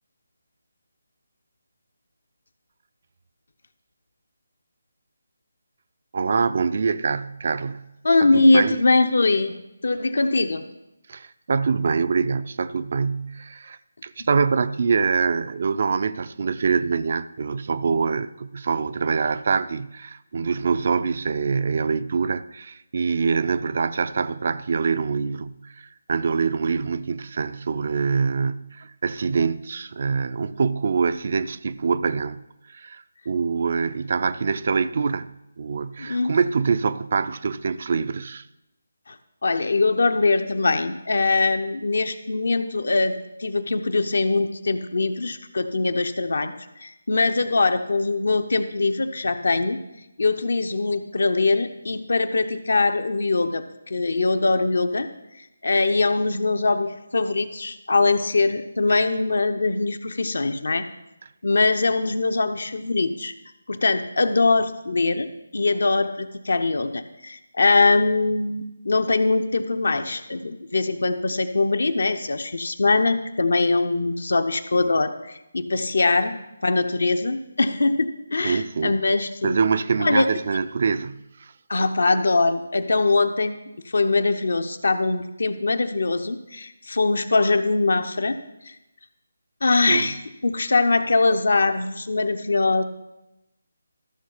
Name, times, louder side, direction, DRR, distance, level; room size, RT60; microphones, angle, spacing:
voice 1, 6.1-7.9 8.2-8.8 11.1-32.4 32.7-35.3 35.6-38.4 78.4-79.0 79.4-81.5 89.9-90.1, right 5 dB, 50° right, 0.4 m, -25 dB
voice 2, 8.0-10.6 36.0-36.3 39.1-39.2 39.4-46.5 46.8-49.8 50.2-55.1 55.6-60.8 61.4-63.3 63.7-79.6 80.0-80.3 81.7-83.6 83.8-88.4 88.7-88.8 89.6-90.2 90.4-92.8, left 3 dB, 65° left, 0.9 m, -22 dB
13.5 x 6.3 x 5.6 m
figure-of-eight pair, 155°, 0 cm